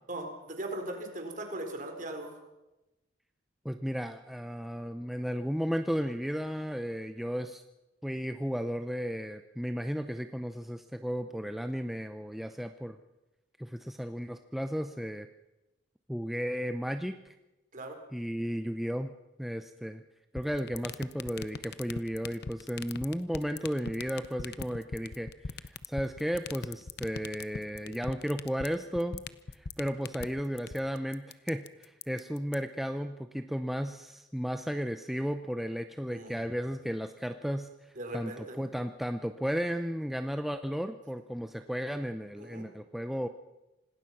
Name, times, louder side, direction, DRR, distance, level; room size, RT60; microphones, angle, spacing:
voice 1, 0.1-2.4 17.7-18.0 36.1-36.4 38.0-38.6 42.4-42.7, right 1 dB, 45° right, 4 dB, 4.2 m, -39 dB
voice 2, 3.6-7.6 8.0-13.0 13.6-15.3 16.1-17.3 18.1-19.1 19.4-20.0 20.3-29.2 29.5-37.7 38.1-43.3, equal, ahead, 7 dB, 0.6 m, -34 dB
sound 1, 20.4-32.5, left 4 dB, 55° left, 0.8 m, -39 dB
26.5 x 19.0 x 5.9 m, 1.0 s
head